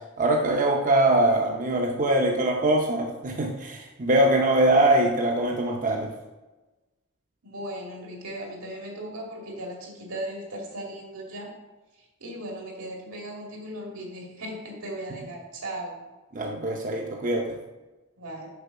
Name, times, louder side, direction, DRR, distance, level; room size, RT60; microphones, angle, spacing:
voice 1, 0.2-6.1 16.3-17.6, right 1 dB, 40° right, 1 dB, 0.6 m, -23 dB
voice 2, 7.4-11.5 12.0-16.0 18.2-18.5, right 1 dB, 85° right, -1 dB, 2.1 m, -37 dB
6.8 x 4.5 x 5.7 m, 1.1 s
head